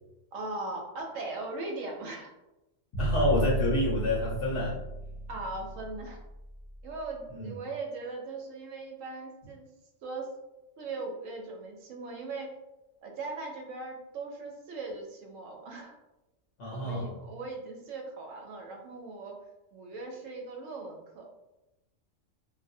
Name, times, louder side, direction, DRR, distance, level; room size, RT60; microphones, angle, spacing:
voice 1, 0.3-2.3 5.3-6.2 6.8-9.7 10.0-10.3 10.8-12.5 13.0-16.0 16.7-19.4 19.7-21.3, right 3 dB, 80° right, 1 dB, 0.9 m, -39 dB
sound 1, 2.9-7.0, right 2 dB, 30° left, 0.6 m, -33 dB
voice 2, 3.0-4.8 7.3-7.5 16.6-17.3, left 1 dB, 70° left, -5 dB, 0.9 m, -28 dB
2.4 x 2.0 x 2.6 m, 0.97 s
omnidirectional pair, 1.3 m